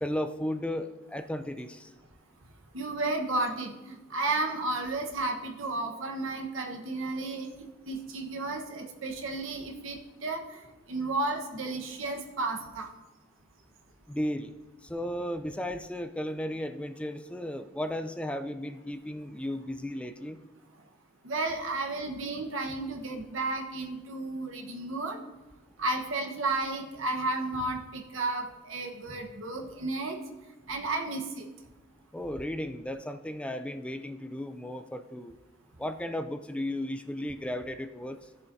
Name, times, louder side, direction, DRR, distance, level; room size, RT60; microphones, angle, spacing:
voice 1, 0.0-1.9 14.1-14.5 14.8-20.4 32.1-35.3 35.8-38.2, left 1 dB, 5° left, 8 dB, 0.3 m, -35 dB
voice 2, 2.7-12.9 21.2-25.2 25.8-30.2 30.7-31.5, right 2 dB, 80° right, 3 dB, 1.2 m, -33 dB
15.0 x 7.1 x 2.7 m, 1.1 s
head